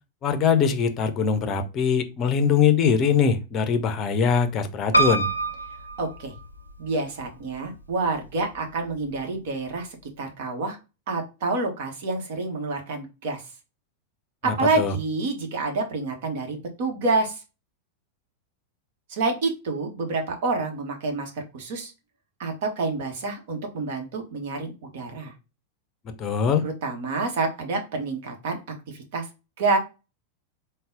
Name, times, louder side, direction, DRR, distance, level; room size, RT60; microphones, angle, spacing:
voice 1, 0.2-5.3 14.5-14.9 26.2-26.7, left 6 dB, 30° left, 0.6 m, -22 dB
Piano, 4.9-6.9 7.5-8.3 8.6-8.7 8.9-9.0, right 3 dB, 85° left, 0.5 m, -25 dB
voice 2, 6.0-6.3 6.8-9.9 10.2-10.8 11.1-13.4 14.4-17.4 19.1-21.9 22.4-25.3 26.6-28.6 28.9-29.3 29.6-29.8, right 3 dB, 50° right, 1.0 m, -28 dB
3.8 x 2.1 x 3.7 m
figure-of-eight pair, 90°, 0 cm